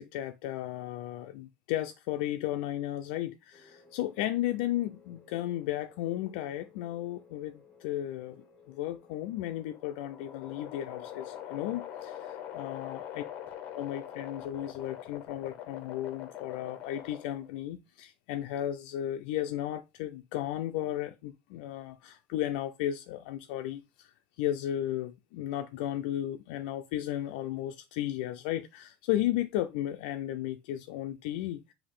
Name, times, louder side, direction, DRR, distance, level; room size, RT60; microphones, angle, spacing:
voice 1, 0.0-13.2 13.7-31.7, left 13 dB, 65° left, 0.4 m, -34 dB
sound 1, 3.5-15.3, left 4 dB, 10° left, 1.0 m, -59 dB
sound 2, 9.3-17.6, left 11 dB, 35° left, 0.7 m, -43 dB
5.2 x 2.6 x 3.6 m
cardioid pair, 175°, 5 cm